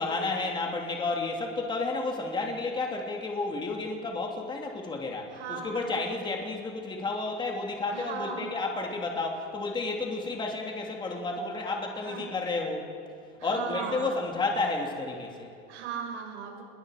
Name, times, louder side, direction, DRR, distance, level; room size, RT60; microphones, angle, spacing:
voice 1, 0.0-12.9 13.4-15.5, left 3 dB, 15° left, 1 dB, 2.8 m, -31 dB
voice 2, 5.3-6.1 7.9-8.5 12.0-12.2 13.4-14.2 15.7-16.6, right 6 dB, 90° right, 0 dB, 6.9 m, -37 dB
29.0 x 22.0 x 5.1 m, 2.5 s
supercardioid pair, 155°, 34 cm